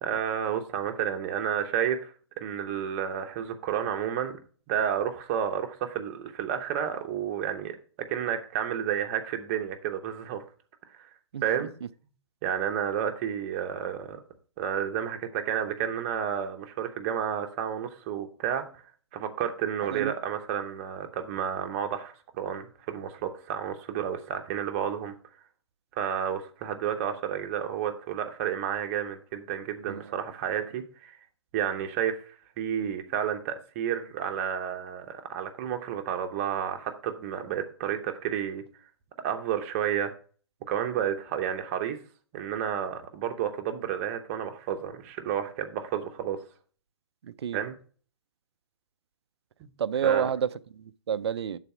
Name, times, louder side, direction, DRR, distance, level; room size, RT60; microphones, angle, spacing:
voice 1, 0.0-4.4 4.7-10.4 10.9-11.1 11.4-11.7 12.4-14.2 14.6-18.8 19.1-25.1 26.0-31.2 31.5-38.6 39.2-40.1 40.7-42.0 42.3-46.4 47.5-47.7 49.6-49.7 50.0-50.3, right 9 dB, 30° right, 0.9 m, -31 dB
voice 2, 11.3-11.7 19.9-20.1 29.9-30.1 47.2-47.6 49.8-51.6, right 8 dB, 70° right, 0.4 m, -30 dB
6.7 x 4.1 x 6.0 m
hypercardioid pair, 140°, 14 cm